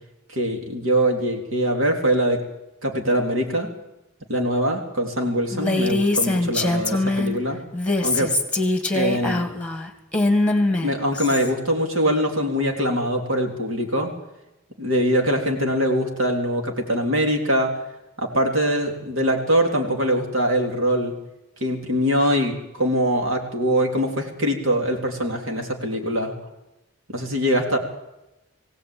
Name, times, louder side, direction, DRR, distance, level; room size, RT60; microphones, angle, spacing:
voice 1, 0.3-2.5 2.8-3.7 4.3-7.6 8.0-8.4 8.9-9.5 10.8-14.1 14.8-17.7 18.2-21.1 21.6-26.3 27.1-27.8, equal, 65° right, 2 dB, 3.5 m, -23 dB
Female speech woman speaking, 5.5-7.4 7.7-11.5, left 2 dB, 5° left, 1.9 m, -22 dB
21.0 x 17.5 x 8.7 m, 0.94 s
head